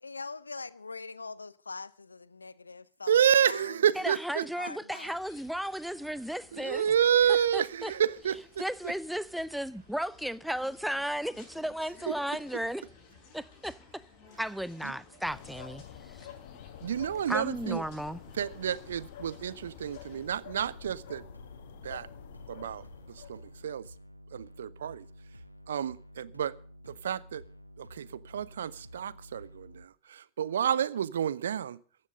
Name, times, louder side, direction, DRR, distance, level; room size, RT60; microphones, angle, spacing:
voice 1, 0.0-3.9 4.6-5.2, left 4 dB, 80° left, 0.6 m, -43 dB
voice 2, 3.1-4.4 6.5-8.4 12.1-12.2 14.8-14.9 16.8-17.8 18.4-21.2 21.8-22.1 22.5-22.8 23.3-23.9 24.3-25.0 25.7-26.5 26.9-27.4 27.8-31.8, right 9 dB, 65° right, 0.5 m, -29 dB
voice 3, 4.0-6.9 7.3-7.9 8.6-12.8 13.3-14.0 14.4-16.3 17.3-18.2, equal, ahead, 0.6 m, -35 dB
sound 1, 5.0-20.3, left 4 dB, 40° left, 7.3 m, -57 dB
sound 2, 15.2-23.8, left 9 dB, 55° left, 1.5 m, -48 dB
sound 3, 20.6-29.8, equal, 90° right, 0.9 m, -51 dB
14.5 x 9.8 x 6.6 m
figure-of-eight pair, 90°, 0 cm